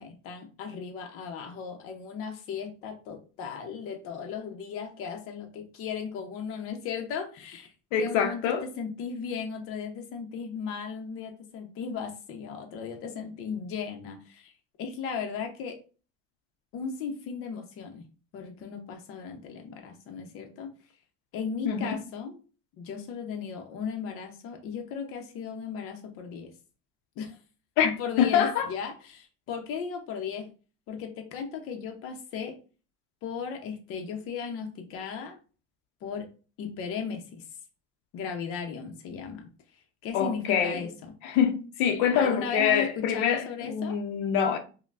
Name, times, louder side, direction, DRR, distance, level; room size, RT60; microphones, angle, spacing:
voice 1, 0.0-14.5 14.8-15.8 16.7-18.0 18.3-20.7 21.3-22.4 22.8-26.5 27.2-27.4 27.8-30.5 30.9-32.6 33.2-35.4 36.0-36.3 36.6-37.4 38.1-39.5 40.0-41.1 42.1-44.0, left 6 dB, 45° left, 0.7 m, -36 dB
voice 2, 7.9-8.6 21.7-22.0 27.8-27.9 28.2-28.7 40.1-40.8 41.2-44.6, left 8 dB, 80° left, 0.7 m, -25 dB
5.3 x 2.2 x 2.4 m
cardioid pair, 165°, 30 cm